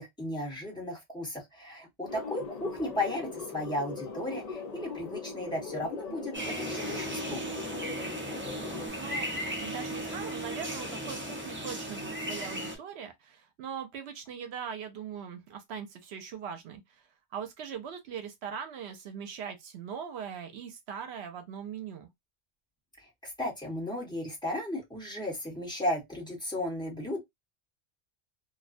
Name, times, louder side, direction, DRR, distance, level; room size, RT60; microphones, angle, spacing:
voice 1, 0.0-7.4 23.2-27.2, left 1 dB, 5° left, 1.0 m, -35 dB
sound 1, 2.1-8.9, left 4 dB, 45° left, 0.6 m, -40 dB
sound 2, 6.3-12.8, right 1 dB, 15° right, 0.5 m, -36 dB
voice 2, 8.9-17.1 17.3-22.1, right 7 dB, 80° right, 0.9 m, -41 dB
2.3 x 2.2 x 2.4 m
omnidirectional pair, 1.1 m